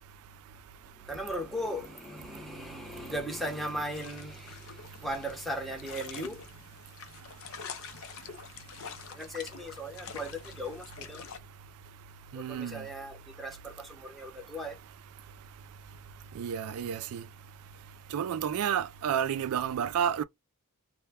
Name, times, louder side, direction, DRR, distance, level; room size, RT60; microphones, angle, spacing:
voice 1, 0.8-6.4 9.1-11.3 12.3-14.8, equal, ahead, 0.7 m, -38 dB
sound 1, 3.9-11.4, left 6 dB, 65° left, 0.5 m, -46 dB
voice 2, 12.3-12.8 16.4-17.2 18.1-20.2, right 8 dB, 75° right, 0.3 m, -30 dB
2.2 x 2.1 x 3.3 m
head